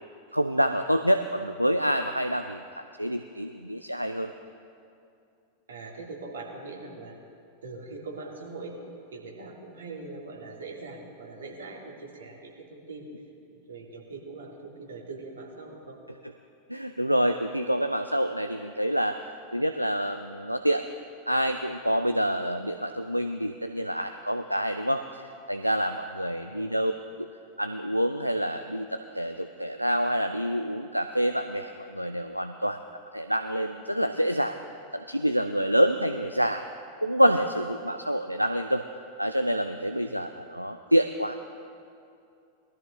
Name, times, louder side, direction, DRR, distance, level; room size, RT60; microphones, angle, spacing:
voice 1, 0.3-4.3 16.7-19.2 19.5-20.8 21.3-25.2 25.5-26.9 27.2-27.3 27.6-32.8 33.1-34.6 34.9-36.6 37.0-38.8 39.2-41.3, equal, 90° right, 8 dB, 0.4 m, -27 dB
voice 2, 5.7-7.2 7.6-8.8 9.1-13.1 13.5-16.0 26.2-26.8 40.0-40.2, right 3 dB, 70° right, -2 dB, 2.7 m, -42 dB
21.0 x 13.5 x 3.2 m, 2.6 s
figure-of-eight pair, 90°, 0 cm